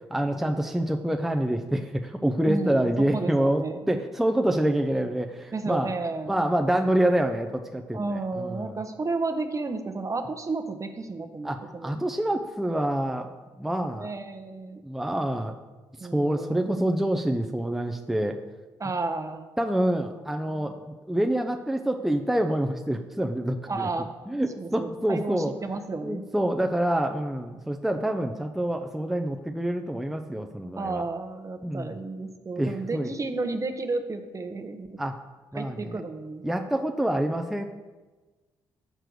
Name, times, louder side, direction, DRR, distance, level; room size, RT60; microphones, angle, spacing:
voice 1, 0.1-5.9 6.3-8.8 11.4-13.3 13.6-14.1 14.8-15.5 16.1-18.4 19.6-23.9 24.3-25.5 26.0-31.0 31.6-31.9 32.6-33.1 35.0-35.2 35.5-36.0 36.4-37.6, right 1 dB, 5° right, 4 dB, 0.6 m, -27 dB
voice 2, 2.5-4.0 5.5-6.4 7.9-12.0 13.9-14.8 16.0-16.8 18.8-19.4 23.7-24.1 24.6-26.2 30.8-35.0 35.5-36.4, right 3 dB, 30° right, 8 dB, 0.9 m, -32 dB
6.7 x 4.5 x 6.2 m, 1.2 s
hypercardioid pair, 45°, 10 cm